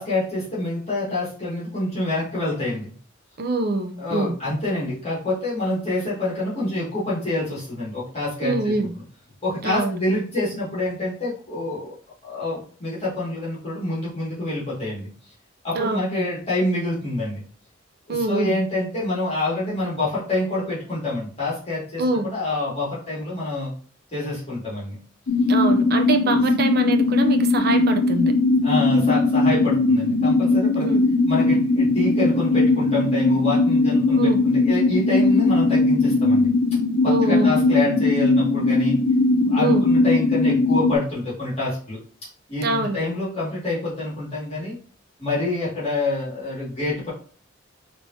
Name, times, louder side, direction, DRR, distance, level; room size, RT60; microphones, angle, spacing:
voice 1, 0.0-2.9 4.0-8.5 9.4-11.9 12.2-15.1 15.6-17.4 18.1-23.7 24.1-25.0 26.2-26.4 28.6-30.9 31.3-36.5 37.0-39.0 39.5-42.0 42.5-44.8 45.2-47.1, left 2 dB, 35° left, -8 dB, 1.9 m, -26 dB
voice 2, 3.4-4.4 8.4-8.9 9.6-10.0 15.7-16.2 18.1-18.6 22.0-22.3 25.5-28.3 30.8-31.1 34.2-34.4 37.1-37.5 39.6-39.9 42.6-43.0, right 2 dB, 55° right, 6 dB, 0.5 m, -24 dB
sound 1, 25.3-41.0, left 2 dB, 60° left, 0.6 m, -19 dB
4.7 x 3.0 x 2.7 m, 0.42 s
head